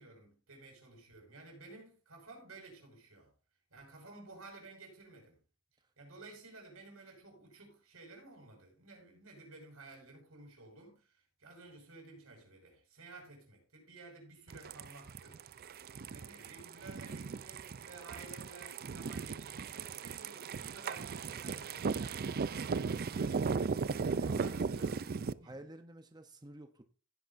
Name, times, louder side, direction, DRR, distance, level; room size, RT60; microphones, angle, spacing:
voice 1, 0.0-3.3 3.7-5.4 6.0-15.4 16.0-25.6, right 3 dB, 90° right, 5.9 m, -54 dB
sound 1, 14.5-25.3, right 5 dB, 45° right, 0.5 m, -37 dB
voice 2, 24.0-25.0 25.4-26.8, right 1 dB, 20° right, 0.8 m, -51 dB
16.0 x 9.8 x 2.6 m
head